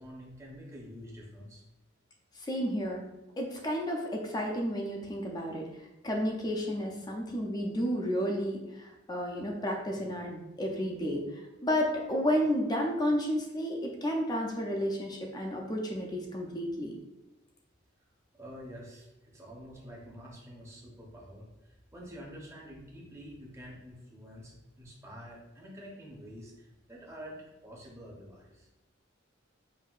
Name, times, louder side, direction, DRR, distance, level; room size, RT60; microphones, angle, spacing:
voice 1, 0.0-1.6 18.3-28.7, equal, 15° right, -3 dB, 0.8 m, -48 dB
voice 2, 2.4-3.0 3.4-5.7 6.0-16.9, equal, 20° left, 0 dB, 0.5 m, -32 dB
5.4 x 2.6 x 2.4 m, 0.97 s
head